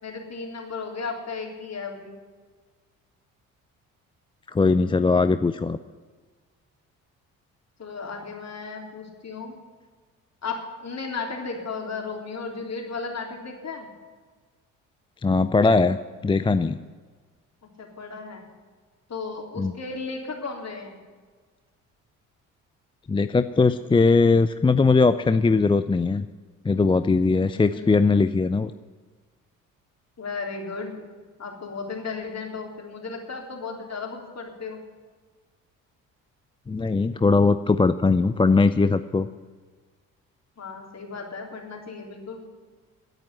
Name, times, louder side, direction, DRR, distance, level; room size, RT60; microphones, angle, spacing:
voice 1, 0.0-2.1 7.8-9.6 10.4-13.9 17.8-18.4 19.1-21.0 27.7-27.9 30.2-31.0 31.4-34.8 40.6-42.4, left 4 dB, 40° left, 1 dB, 3.6 m, -35 dB
voice 2, 4.5-5.8 15.2-16.0 16.2-16.8 19.6-19.7 23.1-26.3 26.6-28.7 36.7-39.3, left 4 dB, 15° left, 12 dB, 0.5 m, -20 dB
10.5 x 9.0 x 9.8 m, 1.5 s
hypercardioid pair, 50°, 39 cm